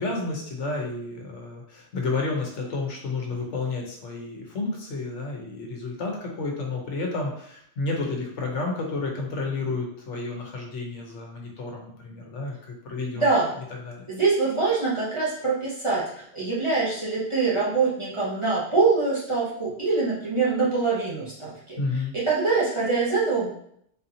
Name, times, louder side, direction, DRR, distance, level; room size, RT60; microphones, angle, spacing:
voice 1, 0.0-13.2 13.8-14.1 21.8-22.1, left 3 dB, 85° left, 0 dB, 1.2 m, -31 dB
voice 2, 13.2-13.5 14.1-21.8 22.1-23.5, right 4 dB, 30° right, -7 dB, 0.9 m, -24 dB
4.1 x 2.7 x 2.8 m, 0.68 s
omnidirectional pair, 1.2 m